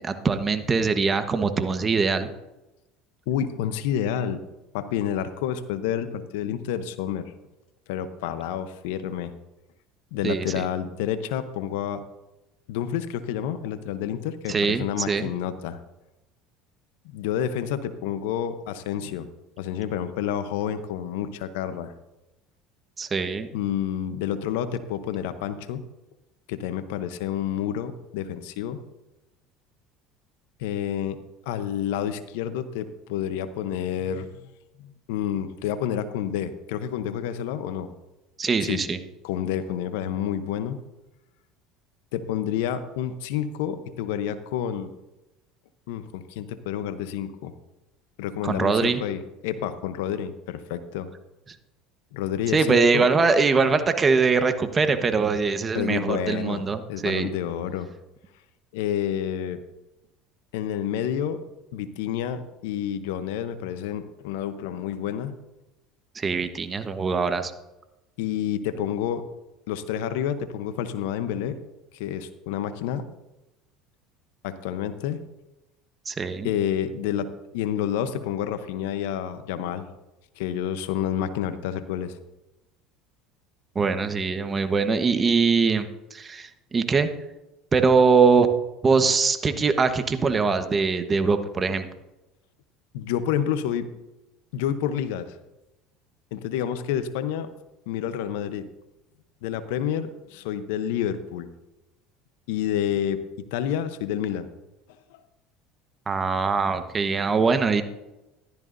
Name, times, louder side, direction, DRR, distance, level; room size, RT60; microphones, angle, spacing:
voice 1, 0.0-2.3 10.2-10.7 14.5-15.2 23.0-23.5 38.4-39.0 48.4-49.0 52.5-57.3 66.1-67.5 76.1-76.5 83.7-87.1 87.7-88.5 88.8-91.8 106.1-107.8, right 4 dB, 25° right, 8 dB, 1.2 m, -22 dB
voice 2, 3.3-4.4 4.7-7.3 7.9-9.3 10.1-12.0 12.7-15.8 17.0-19.3 19.6-21.9 23.5-25.8 26.5-28.8 30.6-31.2 31.5-34.5 34.8-37.9 38.6-38.8 39.2-40.8 42.1-44.9 45.9-47.5 48.2-51.1 52.1-53.1 55.7-56.6 56.9-57.9 58.7-59.6 60.5-61.4 61.7-65.4 68.2-69.2 69.7-71.6 72.0-73.1 74.4-75.2 76.4-79.9 80.4-82.1 92.9-93.9 94.5-95.3 96.3-97.5 97.9-98.7 99.4-101.5 102.5-104.5, left 9 dB, 80° left, 11 dB, 0.8 m, -29 dB
15.0 x 12.5 x 2.7 m, 0.99 s
supercardioid pair, 90°, 0 cm